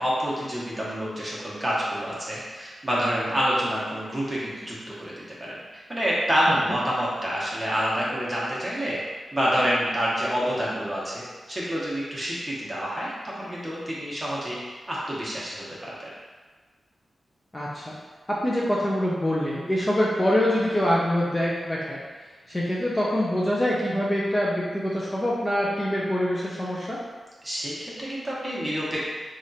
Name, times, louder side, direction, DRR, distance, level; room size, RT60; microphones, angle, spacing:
voice 1, 0.0-5.1 5.4-5.6 5.9-9.0 9.3-11.2 11.5-14.6 14.9-15.9 27.4-29.0, equal, 15° right, -7 dB, 1.2 m, -27 dB
voice 2, 17.5-17.9 18.3-22.0 22.5-27.0, equal, 20° left, -5 dB, 0.5 m, -25 dB
3.4 x 2.5 x 4.1 m, 1.4 s
wide cardioid pair, 90°, 0 cm